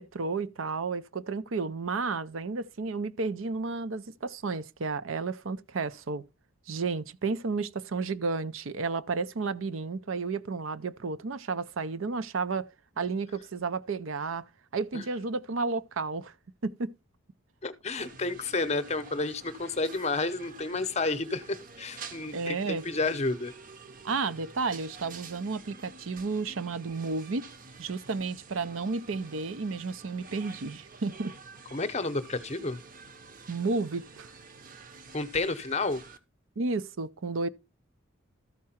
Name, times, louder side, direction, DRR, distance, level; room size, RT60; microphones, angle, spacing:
voice 1, 0.0-6.2 6.7-12.7 13.0-14.5 14.7-16.3 16.6-17.0 22.3-22.8 24.0-27.5 27.8-31.3 33.5-34.3 36.6-37.5, right 4 dB, 70° right, 0.6 m, -32 dB
voice 2, 17.6-23.5 31.7-32.8 35.1-36.0, left 3 dB, 30° left, 0.7 m, -31 dB
sound 1, 18.0-36.2, right 4 dB, 40° right, 0.8 m, -49 dB
13.5 x 4.7 x 4.3 m
head